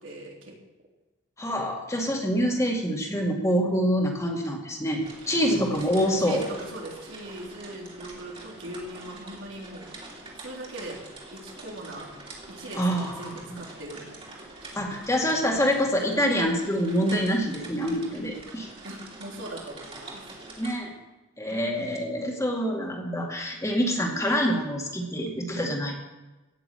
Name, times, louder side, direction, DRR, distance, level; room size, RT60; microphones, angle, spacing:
voice 1, 0.0-0.5 5.5-9.9 10.4-11.0 11.3-12.1 12.5-14.8 18.8-20.3 21.5-21.9, right 1 dB, 80° right, -2 dB, 3.7 m, -40 dB
voice 2, 1.4-6.4 12.8-13.3 14.7-18.7 20.6-20.9 21.4-26.0, equal, 15° left, 0 dB, 2.2 m, -26 dB
sound 1, 5.0-20.7, right 2 dB, 30° right, 3.0 m, -45 dB
17.0 x 6.8 x 7.8 m, 1.1 s
head